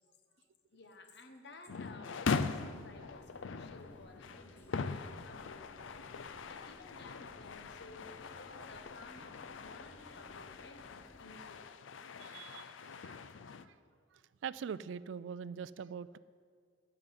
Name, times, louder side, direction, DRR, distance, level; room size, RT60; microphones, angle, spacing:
voice 1, 0.7-6.1 6.4-11.8, left 2 dB, 60° left, 6 dB, 1.2 m, -55 dB
sound 1, 1.7-13.7, left 5 dB, 85° left, 0.5 m, -41 dB
sound 2, 2.5-11.2, left 1 dB, 10° left, 1.0 m, -59 dB
voice 2, 12.2-13.7 14.1-16.2, right 7 dB, 70° right, 18 dB, 0.3 m, -44 dB
13.0 x 5.8 x 9.5 m, 2.1 s
head